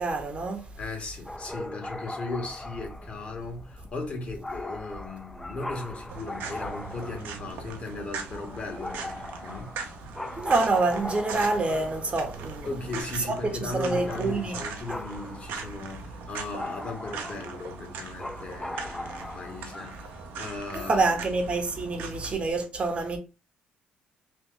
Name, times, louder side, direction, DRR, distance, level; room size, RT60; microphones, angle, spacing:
voice 1, 0.0-0.7 10.4-12.8 13.3-13.4 13.6-14.6 14.9-15.0 20.7-23.2, right 3 dB, 35° right, 0.8 m, -27 dB
voice 2, 0.8-9.7 12.6-21.2, left 3 dB, 45° left, 1.3 m, -37 dB
sound 1, 1.3-21.1, left 1 dB, 10° left, 0.4 m, -40 dB
sound 2, 6.1-22.3, right 5 dB, 80° right, 0.7 m, -40 dB
3.0 x 2.3 x 3.6 m
supercardioid pair, 80°, 3 cm